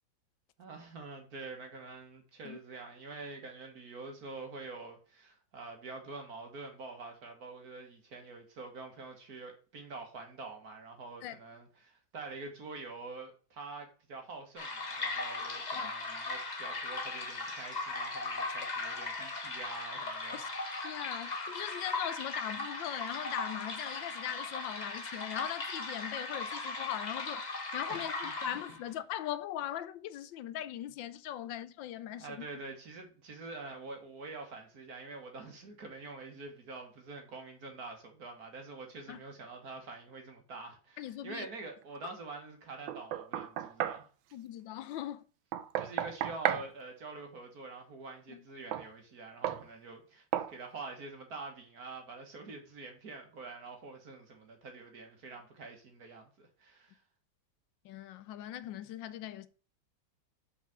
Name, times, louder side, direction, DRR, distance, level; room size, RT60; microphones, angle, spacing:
voice 1, 0.6-20.7 27.9-28.8 32.1-44.0 45.8-57.0, right 3 dB, 50° right, 2.0 m, -46 dB
sound 1, 14.6-28.9, left 3 dB, 25° left, 1.1 m, -38 dB
voice 2, 20.3-32.5 39.1-39.2 41.0-41.5 44.3-45.2 48.3-48.4 57.8-59.5, left 12 dB, 75° left, 1.3 m, -40 dB
Knock, 42.9-44.0 45.5-46.7 48.7-48.9 49.4-49.7 50.3-50.5, right 11 dB, 80° right, 1.4 m, -33 dB
5.6 x 4.9 x 6.0 m
omnidirectional pair, 2.1 m